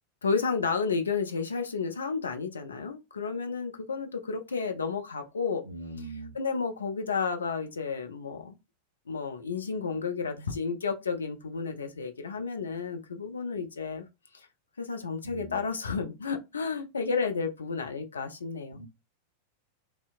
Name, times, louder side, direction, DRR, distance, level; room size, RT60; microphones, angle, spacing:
voice 1, 0.2-5.6 6.0-8.6 9.1-14.0 14.8-18.9, left 5 dB, 70° left, 0.4 m, -32 dB
voice 2, 5.7-6.3 15.2-15.6 18.7-18.9, right 2 dB, 85° right, 0.4 m, -41 dB
2.7 x 2.0 x 2.4 m
figure-of-eight pair, 90°, 0 cm